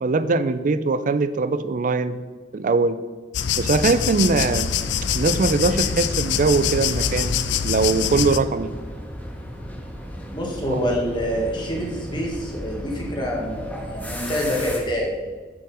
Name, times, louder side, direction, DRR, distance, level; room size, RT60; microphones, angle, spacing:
voice 1, 0.0-2.2 2.5-3.0 3.6-4.7 5.1-7.4 7.6-8.7 10.7-10.8, right 3 dB, 50° right, 13 dB, 0.4 m, -21 dB
sound 1, 3.3-8.4, left 8 dB, 85° left, 0.4 m, -24 dB
sound 2, 4.7-14.8, equal, 10° left, 1.6 m, -35 dB
voice 2, 10.3-15.1, equal, 25° left, -2 dB, 1.8 m, -26 dB
7.3 x 6.3 x 4.9 m, 1.4 s
head